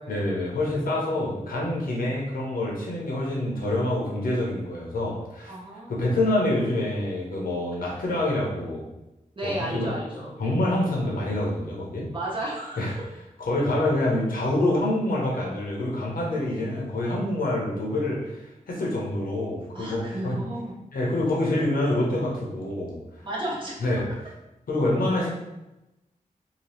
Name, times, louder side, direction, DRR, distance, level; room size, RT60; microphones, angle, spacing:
voice 1, 0.1-5.5 5.9-8.8 9.4-9.9 10.4-12.1 12.8-13.0 13.4-20.4 20.9-23.0 23.8-24.1 24.7-25.4, left 1 dB, 75° left, -3 dB, 1.0 m, -26 dB
voice 2, 5.5-6.2 7.8-8.0 9.4-10.4 12.1-12.9 16.3-16.4 19.7-20.8 23.2-23.9, right 1 dB, 35° right, -6 dB, 1.0 m, -34 dB
2.9 x 2.3 x 3.3 m, 0.95 s
cardioid pair, 60°, 15 cm